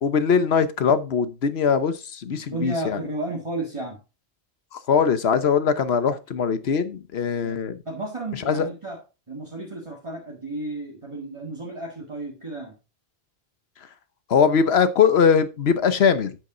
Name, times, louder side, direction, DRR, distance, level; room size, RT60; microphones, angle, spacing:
voice 1, 0.0-3.0 4.9-7.8 8.5-8.6 14.3-16.4, left 6 dB, 85° left, 1.2 m, -21 dB
voice 2, 2.3-4.0 7.4-9.0 9.3-12.8, right 2 dB, 30° right, 1.8 m, -33 dB
8.6 x 7.0 x 3.8 m
omnidirectional pair, 1.0 m